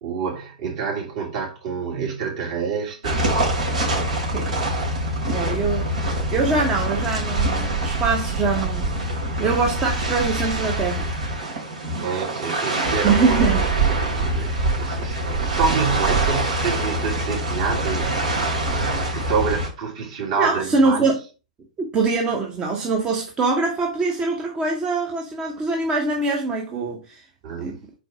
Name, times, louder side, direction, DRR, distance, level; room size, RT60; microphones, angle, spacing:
voice 1, 0.0-3.5 12.0-13.5 13.9-18.4 18.7-21.0 27.4-27.8, right 5 dB, 50° right, 2.7 m, -28 dB
sound 1, 3.0-19.7, right 2 dB, 70° right, 2.9 m, -24 dB
voice 2, 5.3-5.9 6.3-9.0 9.4-11.1 11.4-11.6 13.0-13.6 14.5-14.6 20.4-21.2 21.8-27.2 27.6-27.8, right 3 dB, 20° right, 0.9 m, -23 dB
4.6 x 4.5 x 4.8 m
figure-of-eight pair, 110°, 4 cm